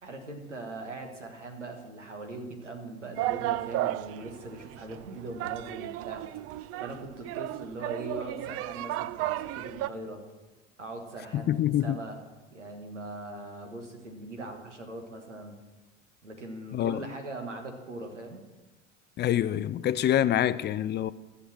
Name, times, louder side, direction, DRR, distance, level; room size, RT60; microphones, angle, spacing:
voice 1, 0.0-6.3 6.8-10.2 10.8-12.2 12.5-15.5 16.2-18.4, right 2 dB, 90° right, 1.6 m, -41 dB
sound 1, 3.2-9.9, right 15 dB, 45° right, 0.4 m, -34 dB
voice 2, 11.3-12.0 16.7-17.1 19.2-21.1, left 11 dB, 30° left, 0.4 m, -26 dB
14.5 x 6.8 x 6.1 m
figure-of-eight pair, 65°, 35 cm